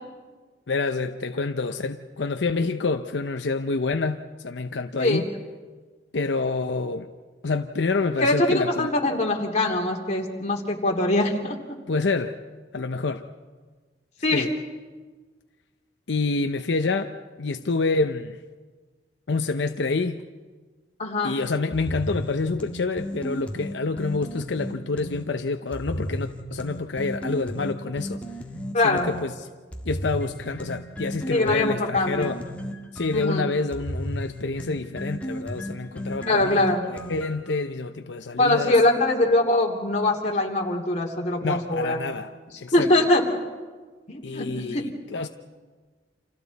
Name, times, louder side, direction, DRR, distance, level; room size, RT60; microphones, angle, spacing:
voice 1, 0.7-5.3 6.1-7.1 7.4-8.9 11.9-12.4 12.7-13.2 14.3-14.5 16.1-18.4 19.3-20.2 21.2-28.2 28.8-29.5 29.8-32.4 32.9-38.8 41.4-42.3 42.6-42.9 44.2-45.3, left 3 dB, 80° left, 6 dB, 0.7 m, -27 dB
voice 2, 8.2-11.6 14.2-14.5 21.0-21.4 28.7-29.1 31.3-32.4 33.1-33.5 36.2-36.8 38.4-42.0 42.7-43.2 44.1-44.5 44.7-44.8, left 2 dB, 40° left, 0 dB, 2.8 m, -22 dB
sound 1, 21.7-25.3 25.7-29.3 29.7-37.5, equal, 10° left, 1.7 m, -34 dB
29.5 x 27.5 x 4.1 m, 1.4 s
head